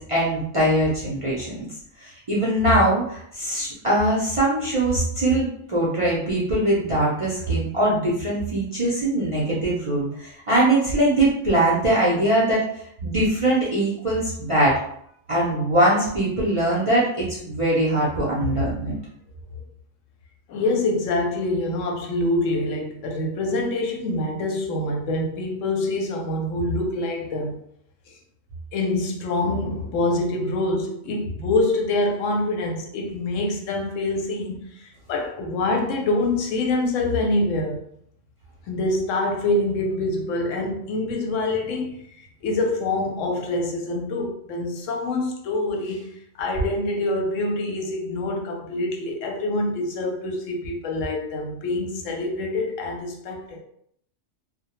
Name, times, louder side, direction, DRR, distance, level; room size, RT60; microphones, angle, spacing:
voice 1, 0.0-1.7 2.0-12.6 13.0-14.7 15.3-19.0, right 1 dB, 45° right, -7 dB, 0.4 m, -22 dB
voice 2, 20.5-27.6 28.7-37.8 38.7-46.1 46.4-53.6, left 2 dB, 85° left, 2 dB, 0.9 m, -25 dB
2.1 x 2.1 x 2.9 m, 0.70 s
omnidirectional pair, 1.3 m